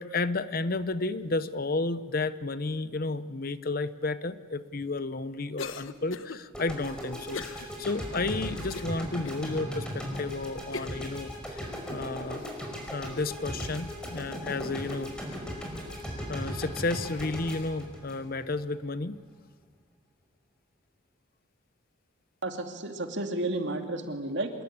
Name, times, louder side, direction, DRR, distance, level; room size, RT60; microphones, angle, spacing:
voice 1, 0.0-11.6 11.9-12.5 12.9-15.1 16.3-19.2, left 3 dB, 45° left, 14 dB, 0.8 m, -32 dB
Cough, 5.6-6.4 7.3-7.7 8.1-8.2 8.7-9.4 10.0-10.1 10.7-11.1, left 4 dB, 70° left, 1.2 m, -38 dB
sound 1, 6.5-18.8, equal, 5° left, 5.4 m, -37 dB
voice 2, 22.4-24.5, right 2 dB, 55° right, 5 dB, 2.6 m, -32 dB
26.0 x 21.5 x 8.9 m, 1.5 s
head